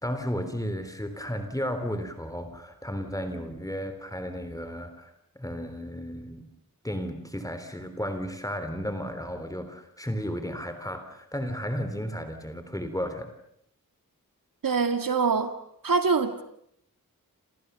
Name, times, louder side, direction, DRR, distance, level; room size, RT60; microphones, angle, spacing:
voice 1, 0.0-6.5 6.8-13.3, equal, 10° left, 8 dB, 3.5 m, -33 dB
voice 2, 14.6-15.5 15.8-16.4, right 5 dB, 75° right, 8 dB, 2.0 m, -24 dB
30.0 x 28.0 x 6.9 m, 0.73 s
wide cardioid pair, 100°, 34 cm